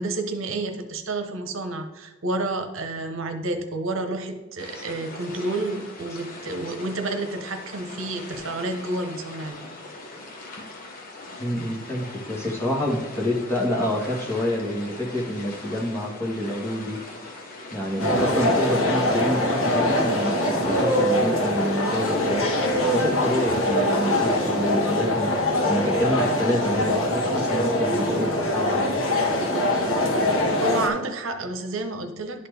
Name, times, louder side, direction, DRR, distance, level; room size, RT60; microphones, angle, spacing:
voice 1, 0.0-9.7 30.6-32.5, right 2 dB, 70° right, 6 dB, 0.9 m, -30 dB
sound 1, 4.6-23.8, left 2 dB, 45° left, 1.2 m, -41 dB
voice 2, 11.4-17.0 17.7-22.5 22.9-25.3 25.7-29.0, left 1 dB, 10° left, -3 dB, 1.4 m, -27 dB
sound 2, 18.0-30.9, left 1 dB, 80° left, 1.4 m, -23 dB
11.0 x 4.3 x 3.4 m, 1.2 s
head